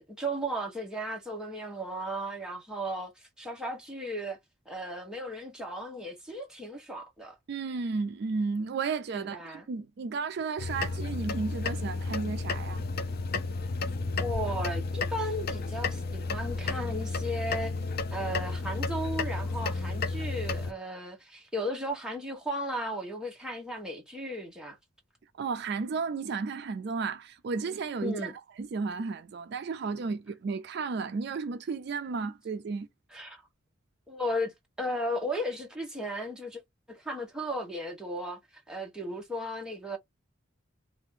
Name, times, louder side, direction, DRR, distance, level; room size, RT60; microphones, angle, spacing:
voice 1, 0.0-4.4 4.7-7.4 9.1-9.7 14.2-17.7 18.1-24.8 28.0-28.3 33.1-33.4 34.1-34.5 34.8-36.6 36.9-38.4 38.7-40.0, equal, 5° right, 0.9 m, -35 dB
voice 2, 7.5-12.8 25.4-32.9, right 4 dB, 55° right, 0.3 m, -33 dB
sound 1, 10.6-20.7, left 3 dB, 45° left, 0.5 m, -32 dB
3.3 x 2.5 x 3.6 m
head